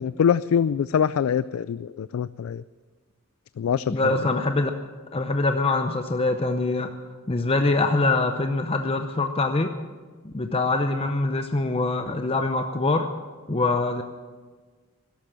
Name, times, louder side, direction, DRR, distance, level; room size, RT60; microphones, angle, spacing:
voice 1, 0.0-2.6 3.6-4.1, left 7 dB, 85° left, 16 dB, 0.3 m, -24 dB
voice 2, 3.9-4.7 5.1-6.9 7.3-9.7 10.2-13.1 13.5-14.0, left 2 dB, 30° left, 7 dB, 0.6 m, -24 dB
13.0 x 11.5 x 7.5 m, 1.4 s
head